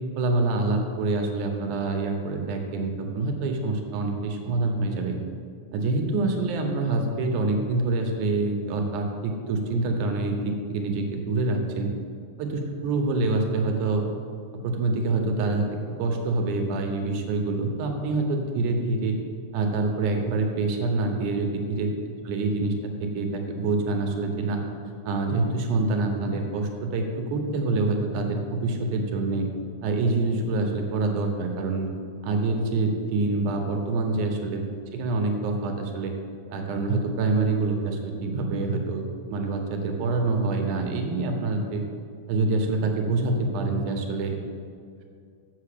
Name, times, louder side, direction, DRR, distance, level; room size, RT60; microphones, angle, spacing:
voice 1, 0.2-5.2 5.7-11.9 12.4-14.0 14.6-15.7 16.0-19.2 19.5-21.9 22.3-22.7 23.0-24.6 25.0-29.5 29.8-31.9 32.2-34.6 34.9-36.1 36.5-41.8 42.3-44.4, right 3 dB, 75° right, 3 dB, 2.4 m, -26 dB
7.5 x 7.0 x 6.7 m, 2.3 s
omnidirectional pair, 3.6 m